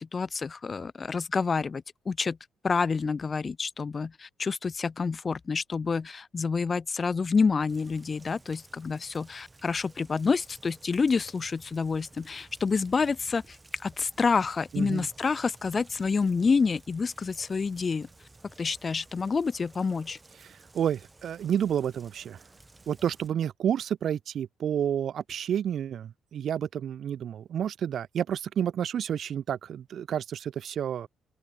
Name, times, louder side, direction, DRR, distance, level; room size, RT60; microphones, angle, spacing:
voice 1, 0.0-2.4 2.6-13.6 13.8-18.1 18.6-20.2, left 5 dB, 35° left, 1.1 m, -28 dB
Rain, 7.7-23.3, right 2 dB, 20° right, 3.6 m, -55 dB
voice 2, 14.7-15.1 20.4-22.4 22.9-31.1, right 9 dB, 65° right, 0.5 m, -30 dB
open air
cardioid pair, 90°, 0 cm